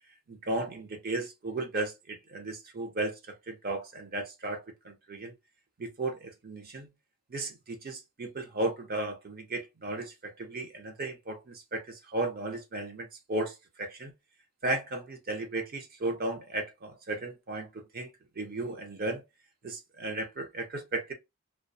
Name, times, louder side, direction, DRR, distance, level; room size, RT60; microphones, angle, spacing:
voice 1, 0.3-5.3 5.8-6.9 7.3-14.1 14.6-18.1 18.4-19.2 19.6-21.1, right 2 dB, 40° right, 0.6 m, -35 dB
2.4 x 2.2 x 2.5 m
head